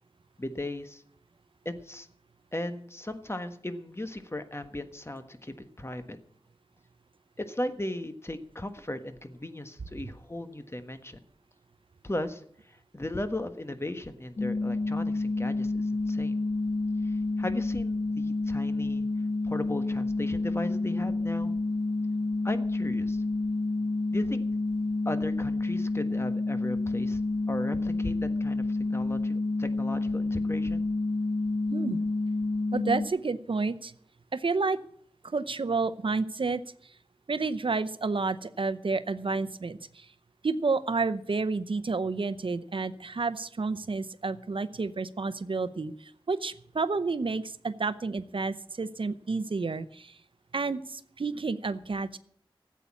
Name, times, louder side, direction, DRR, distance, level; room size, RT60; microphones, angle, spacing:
voice 1, 0.4-1.0 1.6-2.1 2.5-6.2 7.4-11.2 12.0-16.3 17.0-19.1 19.4-21.5 22.4-23.2 24.1-24.4 25.0-27.2 27.5-30.8, left 1 dB, 30° left, 9 dB, 1.4 m, -37 dB
sound 1, 14.4-33.1, left 2 dB, 70° left, 1.4 m, -29 dB
voice 2, 32.7-33.9 34.3-34.8 35.2-36.6 37.3-40.1 40.4-50.2 50.5-52.2, right 4 dB, 70° right, 14 dB, 0.7 m, -30 dB
14.0 x 8.4 x 8.4 m, 0.63 s
wide cardioid pair, 50°, 9 cm